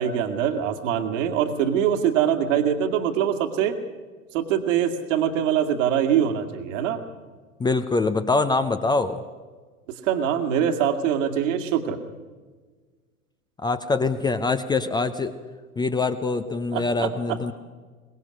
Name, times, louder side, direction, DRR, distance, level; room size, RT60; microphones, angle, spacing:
voice 1, 0.0-3.7 4.3-7.0 10.0-12.0 16.7-17.5, right 9 dB, 55° right, 6 dB, 2.2 m, -23 dB
voice 2, 7.6-9.2 13.6-15.3 15.8-17.5, left 3 dB, 10° left, 9 dB, 0.7 m, -24 dB
23.5 x 20.5 x 6.4 m, 1.4 s
figure-of-eight pair, 95°, 45 cm